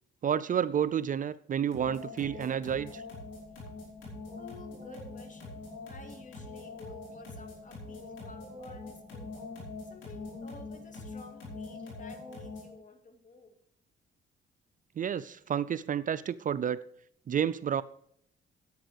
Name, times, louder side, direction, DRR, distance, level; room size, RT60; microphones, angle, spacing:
voice 1, 0.2-3.0 15.0-16.8 17.3-17.8, right 8 dB, 40° right, 0.5 m, -30 dB
sound 1, 1.7-12.8, left 3 dB, 75° left, 5.0 m, -44 dB
sound 2, 2.5-10.9, equal, 20° right, 3.9 m, -59 dB
voice 2, 4.4-5.6 5.9-9.3 9.9-13.6, left 3 dB, 40° left, 2.2 m, -52 dB
10.5 x 8.8 x 4.8 m
cardioid pair, 90°, 20 cm